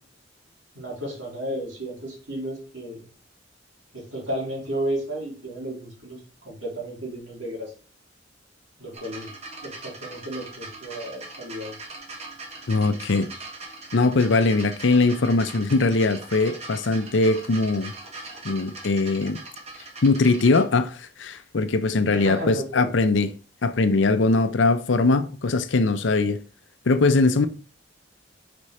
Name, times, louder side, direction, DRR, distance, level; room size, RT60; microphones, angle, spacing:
voice 1, 0.7-3.1 3.9-7.7 8.8-9.3 9.6-11.8 22.1-23.2 27.4-27.5, right 1 dB, 85° right, 3.0 m, -33 dB
sound 1, 8.9-20.6 21.6-21.7, right 3 dB, 35° right, 1.4 m, -41 dB
voice 2, 12.7-13.3 13.9-17.9 18.4-19.4 20.0-23.3 23.6-26.4 26.9-27.5, left 3 dB, 85° left, 0.6 m, -21 dB
5.2 x 4.3 x 4.8 m
head